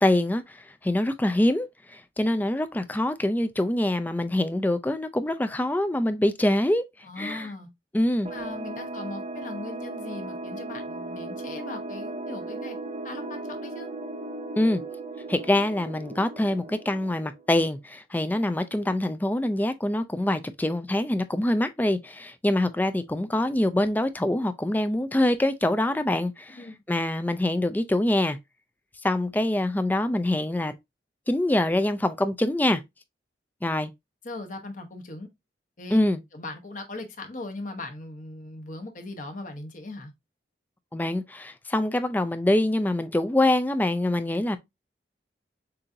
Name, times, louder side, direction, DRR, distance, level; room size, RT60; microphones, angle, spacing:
voice 1, 0.0-6.8 7.2-7.5 7.9-8.3 14.6-14.8 15.3-26.6 26.9-28.4 29.0-30.7 31.3-32.8 33.6-33.9 35.9-36.2 40.9-44.6, left 1 dB, 10° left, 0.3 m, -25 dB
voice 2, 7.1-7.7 8.3-12.8 13.0-13.9 26.6-26.7 34.2-35.3 35.8-36.0 36.3-40.1, left 2 dB, 45° left, 0.9 m, -39 dB
sound 1, 8.2-17.6, right 2 dB, 35° right, 0.7 m, -37 dB
6.7 x 2.6 x 2.6 m
head